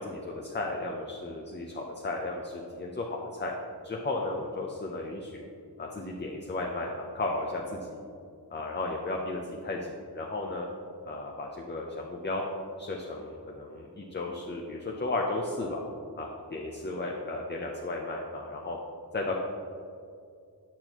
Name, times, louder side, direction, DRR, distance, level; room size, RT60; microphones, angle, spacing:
voice 1, 0.0-3.5 3.8-5.4 5.8-8.0 8.5-10.7 11.1-12.4 12.8-15.8 16.2-18.8 19.1-19.4, left 2 dB, 25° left, -1 dB, 0.6 m, -34 dB
9.0 x 6.1 x 2.9 m, 2.4 s
wide cardioid pair, 100°, 42 cm